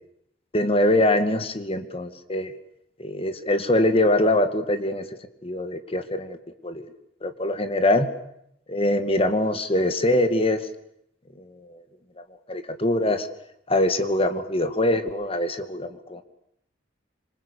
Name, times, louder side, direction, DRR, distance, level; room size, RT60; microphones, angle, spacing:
voice 1, 0.5-2.5 3.0-5.1 5.4-6.4 6.6-6.9 7.2-8.1 8.7-10.7 11.4-11.8 12.5-13.3 13.7-16.2, left 1 dB, 30° left, 9 dB, 2.3 m, -23 dB
26.0 x 26.0 x 8.5 m, 0.77 s
head